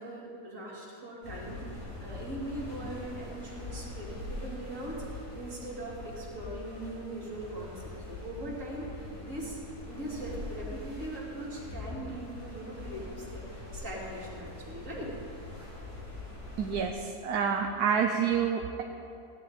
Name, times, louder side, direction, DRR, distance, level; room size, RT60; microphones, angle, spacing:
voice 1, 0.0-1.6 2.0-9.6 9.9-15.1, right 1 dB, 55° right, -5 dB, 2.9 m, -40 dB
sound 1, 1.2-16.9, left 2 dB, 50° left, 4.2 m, -43 dB
voice 2, 16.6-18.8, right 7 dB, 80° right, 3 dB, 1.2 m, -28 dB
15.5 x 10.0 x 4.3 m, 2.6 s
omnidirectional pair, 1.6 m